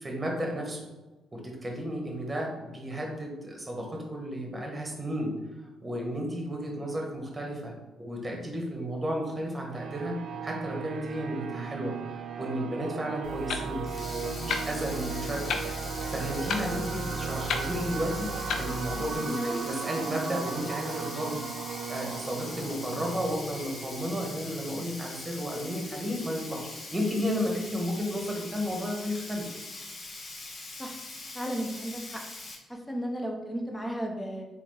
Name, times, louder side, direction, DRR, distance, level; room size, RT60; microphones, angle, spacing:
voice 1, 0.0-0.9 1.3-5.3 5.6-10.2 10.4-12.0 12.4-15.4 16.1-18.3 18.6-21.4 21.9-29.5, equal, 20° right, 0 dB, 1.2 m, -33 dB
sound 1, 9.7-25.1, right 6 dB, 65° right, 0.3 m, -37 dB
Clock, 13.2-19.1, left 4 dB, 70° left, 0.5 m, -36 dB
Sink (filling or washing), 13.8-32.6, left 2 dB, 40° left, 0.9 m, -42 dB
voice 2, 19.2-19.6 30.8-31.0 31.3-32.2 32.7-34.5, equal, 10° left, 1 dB, 0.7 m, -34 dB
4.0 x 3.3 x 3.3 m, 1.1 s
cardioid pair, 90°, 0 cm